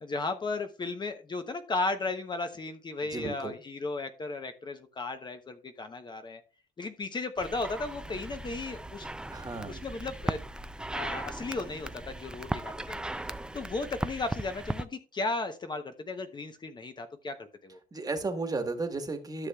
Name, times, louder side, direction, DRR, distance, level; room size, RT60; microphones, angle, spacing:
voice 1, 0.0-6.4 6.8-9.1 9.7-10.4 10.9-13.0 13.5-17.8, left 3 dB, 25° left, 7 dB, 0.7 m, -35 dB
voice 2, 3.1-3.5 9.3-9.9 17.9-19.5, right 3 dB, 20° right, 7 dB, 1.3 m, -34 dB
sound 1, 7.4-14.8, right 1 dB, 5° right, 0.4 m, -37 dB
13.0 x 6.5 x 2.3 m, 0.35 s
cardioid pair, 110°, 17 cm